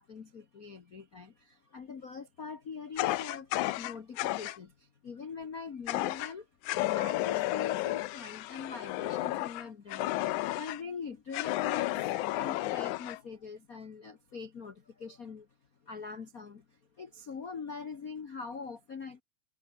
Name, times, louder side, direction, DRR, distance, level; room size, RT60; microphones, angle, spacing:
voice 1, 0.0-3.5 3.7-15.5 15.8-19.2, left 5 dB, 90° left, 0.7 m, -43 dB
Fire, 3.0-4.6 5.9-6.3 6.6-10.8 11.3-13.2, left 17 dB, 75° left, 2.0 m, -32 dB
omnidirectional pair, 3.9 m